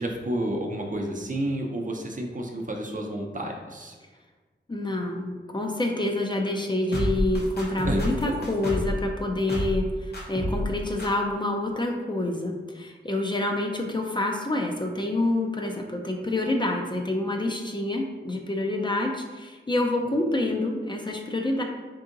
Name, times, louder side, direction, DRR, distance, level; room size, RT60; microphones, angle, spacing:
voice 1, 0.0-4.0 7.8-8.3, right 1 dB, 45° right, 1 dB, 0.6 m, -30 dB
voice 2, 4.7-21.6, left 1 dB, 25° left, 2 dB, 0.4 m, -27 dB
sound 1, 6.9-9.0 9.5-9.9 10.1-10.7 11.0-11.1, left 1 dB, 60° left, 0.9 m, -28 dB
3.5 x 2.7 x 3.8 m, 1.3 s
wide cardioid pair, 80°, 19 cm